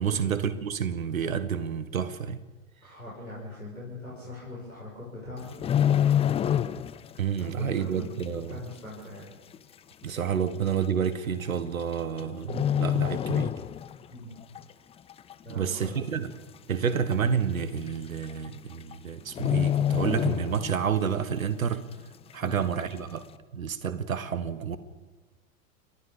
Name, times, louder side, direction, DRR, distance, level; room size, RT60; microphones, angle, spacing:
voice 1, 0.0-2.4 7.2-8.6 10.0-13.5 15.5-16.3 16.7-21.8 22.3-23.2 23.5-24.8, right 7 dB, 70° right, 13 dB, 1.7 m, -29 dB
voice 2, 2.8-6.4 7.4-9.3 14.1-14.3 15.4-16.0 17.0-17.1 22.4-22.6, left 1 dB, 85° left, -4 dB, 6.1 m, -42 dB
sound 1, 5.4-7.1 7.4-7.7 8.2-8.3 9.2-9.3 9.5-9.6 10.5-10.7 11.8-12.2 12.5-14.0 14.4-14.6 15.1-15.6 16.0-16.1 16.3-16.4 16.8-16.9 17.9-18.0 18.2-18.5 18.8-18.9 19.3-21.0 21.3-21.4, left 9 dB, 15° left, 0.6 m, -26 dB
29.5 x 13.0 x 7.0 m, 1.2 s
figure-of-eight pair, 90°, 42 cm